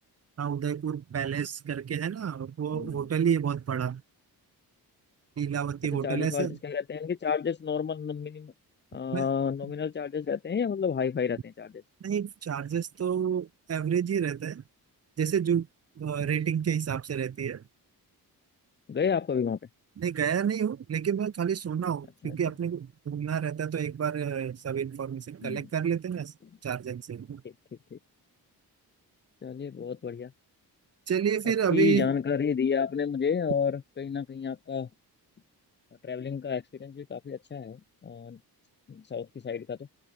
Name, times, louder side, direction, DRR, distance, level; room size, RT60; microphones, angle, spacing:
voice 1, 0.4-4.0 5.4-6.6 9.1-9.3 12.0-14.6 15.2-15.7 16.0-17.6 20.0-26.3 26.6-27.4 31.1-32.1, right 8 dB, 40° right, 0.7 m, -29 dB
voice 2, 6.0-8.5 8.9-11.8 18.9-19.6 22.2-22.4 25.4-25.7 27.4-27.5 27.9-28.0 29.4-30.3 31.7-34.9 36.0-38.4 38.9-39.9, left 6 dB, 30° left, 0.5 m, -30 dB
open air
wide cardioid pair, 145°, 39 cm